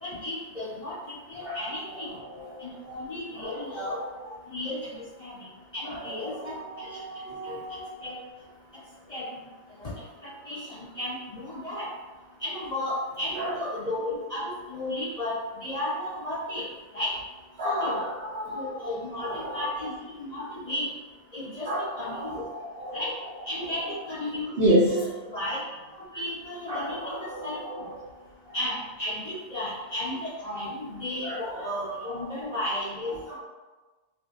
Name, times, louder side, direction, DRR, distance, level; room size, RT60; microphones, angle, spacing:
voice 1, 0.0-2.1 2.6-4.0 4.5-5.5 5.7-7.0 7.4-7.6 8.0-8.2 9.1-9.3 9.8-9.9 10.2-11.9 12.4-16.6 16.9-17.1 17.6-18.1 18.5-20.9 21.3-21.7 22.0-22.4 22.9-23.1 23.4-25.0 25.3-25.6 25.9-27.9 28.5-33.4, left 1 dB, 35° left, -10 dB, 1.0 m, -34 dB
voice 2, 1.4-2.6 3.3-4.0 5.8-7.8 13.4-13.6 17.6-18.8 19.2-19.9 21.6-23.0 23.6-24.0 24.6-24.9 26.7-28.0 28.5-28.6 29.5-29.7 31.2-32.5 33.3-33.4, equal, 55° right, -8 dB, 0.8 m, -31 dB
2.6 x 2.1 x 3.7 m, 1.2 s
omnidirectional pair, 1.4 m